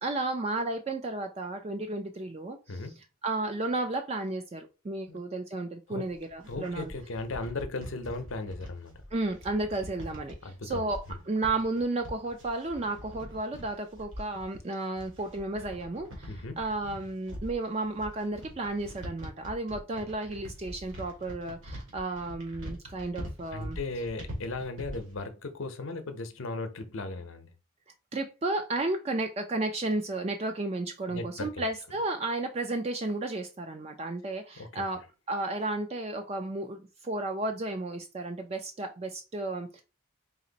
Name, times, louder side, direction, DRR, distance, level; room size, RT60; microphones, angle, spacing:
voice 1, 0.0-2.8 3.2-6.9 9.1-23.8 28.1-35.0 35.3-39.8, right 2 dB, 30° right, 0.4 m, -33 dB
sound 1, 6.1-25.2, equal, 65° right, 1.8 m, -44 dB
voice 2, 6.5-8.9 10.4-11.2 16.3-16.6 23.5-27.5 31.1-31.6 34.6-34.8, left 3 dB, 70° left, 0.7 m, -37 dB
4.1 x 2.5 x 3.9 m
head